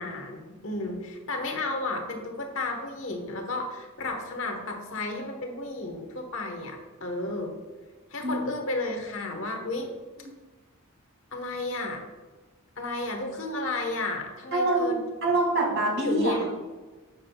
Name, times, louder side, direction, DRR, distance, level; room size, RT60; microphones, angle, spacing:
voice 1, 0.0-7.6 8.1-9.9 11.3-12.0 12.8-15.0 16.0-16.5, left 2 dB, 65° left, 3 dB, 1.3 m, -32 dB
voice 2, 14.5-16.5, right 2 dB, 60° right, -2 dB, 2.3 m, -26 dB
9.6 x 7.4 x 2.4 m, 1.3 s
head